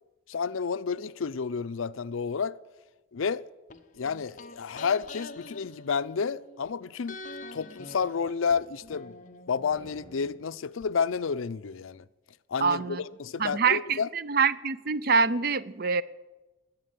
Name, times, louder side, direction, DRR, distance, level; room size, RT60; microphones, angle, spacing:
voice 1, 0.3-2.6 3.1-3.4 3.9-7.2 7.5-9.1 9.5-12.0 12.5-14.1, left 6 dB, 80° left, 0.5 m, -30 dB
sound 1, 3.7-6.7 7.1-10.9 11.1-11.2, left 2 dB, 40° left, 0.8 m, -46 dB
sound 2, 9.7-10.7, equal, 85° right, 5.8 m, -55 dB
voice 2, 12.6-13.0 13.4-16.0, right 5 dB, 45° right, 0.5 m, -25 dB
20.0 x 7.5 x 9.4 m
head